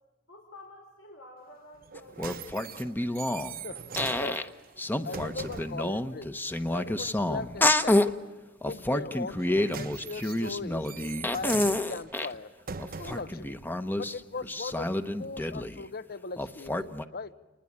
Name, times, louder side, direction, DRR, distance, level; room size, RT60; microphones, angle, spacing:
voice 1, 0.3-2.9, left 2 dB, 85° left, 0 dB, 5.1 m, -51 dB
sound 1, 1.8-5.9 9.2-13.4 14.2-14.3, right 5 dB, 50° right, 1.0 m, -42 dB
sound 2, 2.0-3.6 4.0-4.5 4.8-8.1 8.6-12.4 12.8-15.8 16.4-17.0, left 1 dB, 10° left, 1.0 m, -29 dB
voice 2, 5.0-6.3 6.7-8.1 8.7-10.9 11.3-12.5 13.0-13.6 14.0-17.3, left 4 dB, 50° left, 15 dB, 0.9 m, -39 dB
29.5 x 20.5 x 8.7 m, 1.2 s
head